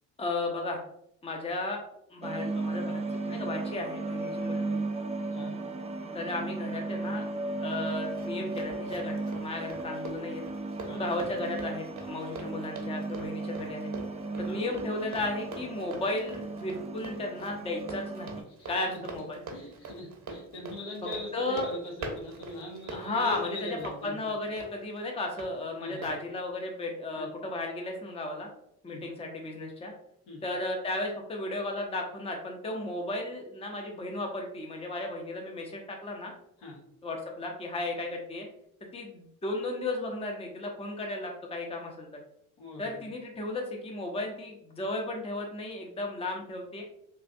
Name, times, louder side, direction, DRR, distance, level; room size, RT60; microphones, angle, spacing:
voice 1, 0.2-0.8 1.2-4.8 6.1-7.2 7.6-10.4 10.9-13.9 14.4-19.4 21.3-21.7 22.9-23.8 24.0-28.5 28.8-29.9 30.4-36.3 37.0-38.5 38.9-42.1 42.8-46.8, left 2 dB, 15° left, 1 dB, 0.7 m, -34 dB
sound 1, 2.2-18.4, right 3 dB, 15° right, 0.3 m, -36 dB
Run, 7.7-25.5 26.0-26.2, right 3 dB, 40° right, 0.9 m, -44 dB
voice 2, 18.6-19.0 19.5-24.3 25.8-26.1 27.1-27.3 28.9-29.0 30.3-30.4 36.6-36.8 42.6-42.9, left 2 dB, 75° left, -5 dB, 1.4 m, -41 dB
3.3 x 2.5 x 2.6 m, 0.73 s
hypercardioid pair, 55°, 42 cm